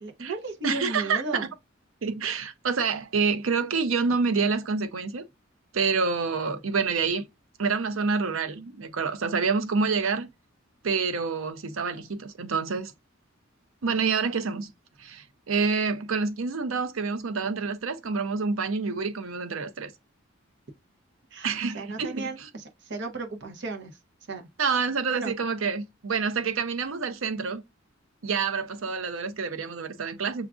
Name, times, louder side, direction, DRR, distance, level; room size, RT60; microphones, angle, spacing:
voice 1, 0.0-1.5 21.3-24.0 24.3-24.5 25.1-25.3, right 2 dB, 60° right, 0.8 m, -35 dB
voice 2, 0.6-1.5 2.0-5.2 5.7-7.2 7.6-10.3 10.8-12.9 13.8-14.7 15.0-19.9 21.4-22.5 24.6-27.6 28.2-30.5, right 5 dB, 90° right, 0.6 m, -27 dB
7.0 x 2.4 x 2.4 m
head